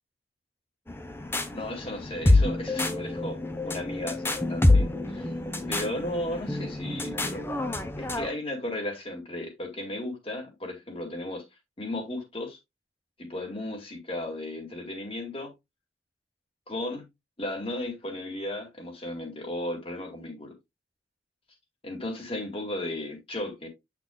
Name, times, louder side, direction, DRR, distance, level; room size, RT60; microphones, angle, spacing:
sound 1, 0.9-8.3, left 2 dB, 15° left, 0.8 m, -26 dB
voice 1, 1.5-3.4 3.6-5.3 5.7-7.5 8.0-11.4 11.8-12.6 13.2-15.5 16.7-17.1 17.4-20.5 21.8-23.7, left 1 dB, 30° left, 2.2 m, -35 dB
8.4 x 6.0 x 2.3 m
head